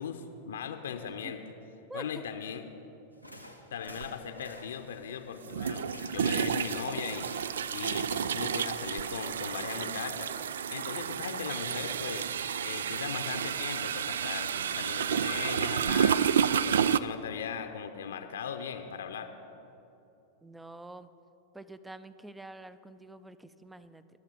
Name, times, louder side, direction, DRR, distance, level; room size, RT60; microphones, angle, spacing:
voice 1, 0.0-1.4 1.9-2.6 3.7-7.3 7.7-10.3 10.7-12.3 12.6-19.3, left 7 dB, 65° left, 6 dB, 0.7 m, -38 dB
voice 2, 1.0-1.3 1.9-2.2 14.5-14.9 20.4-21.1 21.5-24.0, right 2 dB, 5° right, 14 dB, 0.5 m, -47 dB
sound 1, 3.1-10.1, equal, 90° right, 1.1 m, -52 dB
sound 2, 4.0-4.1 5.5-17.0, right 8 dB, 65° right, 0.3 m, -30 dB
22.0 x 7.4 x 5.4 m, 2.9 s
figure-of-eight pair, 90°, 0 cm